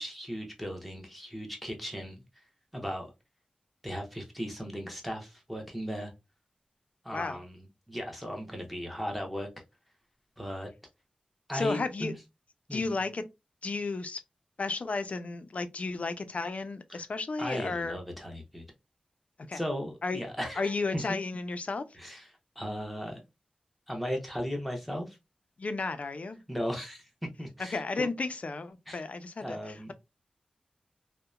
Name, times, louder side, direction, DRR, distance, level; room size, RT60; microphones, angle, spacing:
voice 1, 0.0-2.2 2.7-3.1 3.8-6.1 7.0-9.5 10.4-10.7 11.5-12.1 12.7-13.0 16.9-17.1 17.4-18.6 19.5-21.0 22.0-22.3 22.6-23.2 23.9-25.2 26.5-27.1 27.4-28.1 28.9-29.0 29.4-29.9, equal, ahead, 0.8 m, -37 dB
voice 2, 7.1-7.4 11.5-12.1 12.7-13.2 13.6-14.2 14.6-18.0 19.5-19.6 20.0-20.2 20.6-21.8 25.6-26.4 27.7-29.9, left 3 dB, 55° left, 0.4 m, -33 dB
2.8 x 2.1 x 2.3 m
wide cardioid pair, 75°, 3 cm